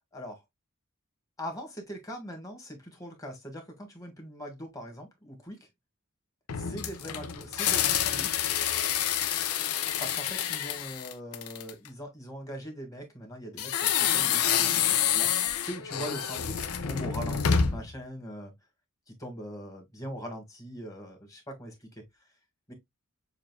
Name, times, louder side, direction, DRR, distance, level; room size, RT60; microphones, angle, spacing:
voice 1, 1.4-5.6 6.6-8.5 10.0-15.3 15.6-18.5 19.2-21.9 22.7-22.8, equal, 15° left, 1.4 m, -41 dB
sound 1, 6.5-11.9 13.6-17.9, left 8 dB, 90° left, 0.6 m, -28 dB
6.6 x 2.5 x 2.2 m
head